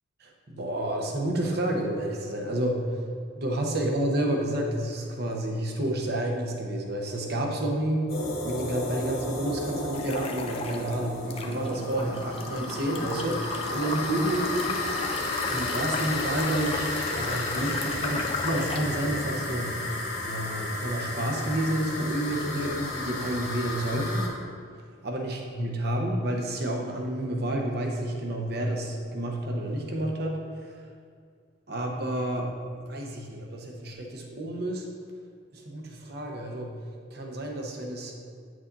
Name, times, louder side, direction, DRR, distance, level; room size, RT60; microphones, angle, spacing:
voice 1, 0.2-15.1 15.5-19.8 20.2-24.3 24.8-30.9 31.7-32.4 32.8-34.9 35.5-36.8 37.1-38.1, right 1 dB, 50° right, 1 dB, 0.9 m, -30 dB
sound 1, 8.1-24.3, left 2 dB, 50° left, 1.2 m, -33 dB
sound 2, 9.9-10.9 11.3-18.9, left 3 dB, 30° left, 0.4 m, -35 dB
9.4 x 6.3 x 2.7 m, 2.1 s
head